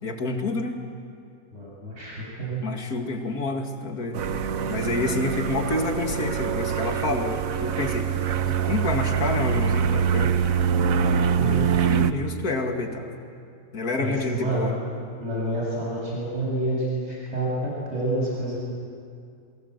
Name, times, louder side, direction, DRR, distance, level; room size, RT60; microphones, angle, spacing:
voice 1, 0.0-0.8 2.6-4.2 4.6-10.3 11.4-13.1 13.7-14.7, left 2 dB, 65° left, 4 dB, 2.7 m, -28 dB
voice 2, 1.5-2.6 11.4-11.5 14.0-14.7 15.2-18.6, right 1 dB, 40° right, -5 dB, 7.9 m, -28 dB
sound 1, 4.1-12.1, right 7 dB, 60° right, 1.3 m, -24 dB
28.5 x 23.0 x 8.2 m, 2.4 s
omnidirectional pair, 1.7 m